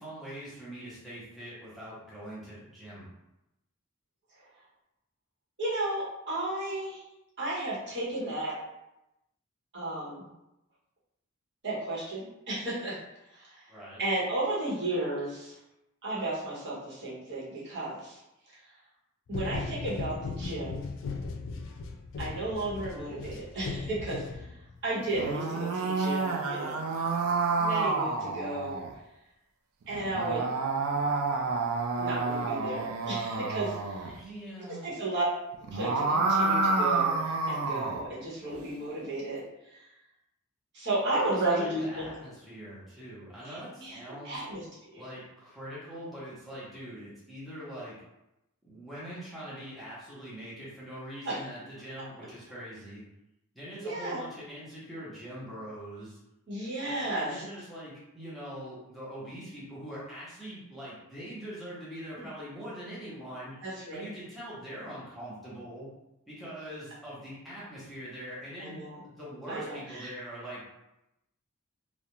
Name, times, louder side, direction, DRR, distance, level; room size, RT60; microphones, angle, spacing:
voice 1, 0.0-3.1 13.7-14.0 34.1-34.9 41.2-44.4 44.9-48.0 48.6-53.0 53.5-56.2 56.8-63.7 63.9-65.9 66.3-70.6, equal, ahead, -10 dB, 0.7 m, -43 dB
voice 2, 5.6-7.0 7.4-8.6 9.7-10.3 11.6-13.0 13.3-13.6 14.0-15.5 16.0-18.2 19.3-20.9 22.2-24.5 24.8-26.8 27.6-28.8 29.9-30.4 32.0-34.1 34.8-35.2 35.7-39.4 39.7-39.8 40.7-42.1 43.4-44.0 44.2-45.1 51.2-51.4 53.8-54.2 56.5-57.4 62.2-62.3 63.6-64.0 68.6-69.0 69.5-70.1, right 2 dB, 55° right, -8 dB, 1.0 m, -33 dB
sound 1, 19.3-24.8, left 4 dB, 65° left, 0.3 m, -37 dB
sound 2, 25.0-28.9 29.9-34.1 35.5-38.0, right 3 dB, 80° right, 0.4 m, -29 dB
2.4 x 2.1 x 2.9 m, 0.90 s
head